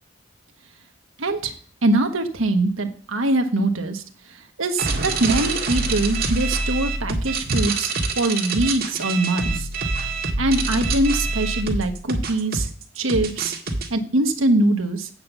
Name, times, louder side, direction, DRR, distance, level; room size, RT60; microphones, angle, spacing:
voice 1, 1.2-1.5 1.8-4.0 4.6-9.7 10.4-12.7 13.0-13.5 13.9-15.1, right 2 dB, 80° right, 5 dB, 1.2 m, -22 dB
sound 1, 4.8-13.9, right 3 dB, 50° right, 1.8 m, -25 dB
8.8 x 5.4 x 7.1 m, 0.43 s
head